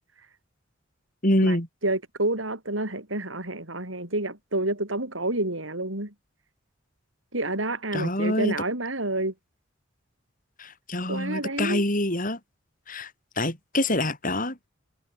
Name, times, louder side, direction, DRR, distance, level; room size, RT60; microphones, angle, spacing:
voice 1, 1.2-1.7 7.9-8.5 10.6-12.4 12.9-13.1 13.4-14.6, left 1 dB, 45° left, 7.9 m, -25 dB
voice 2, 1.8-6.1 7.3-9.3 11.1-11.8, right 2 dB, 80° right, 7.1 m, -29 dB
head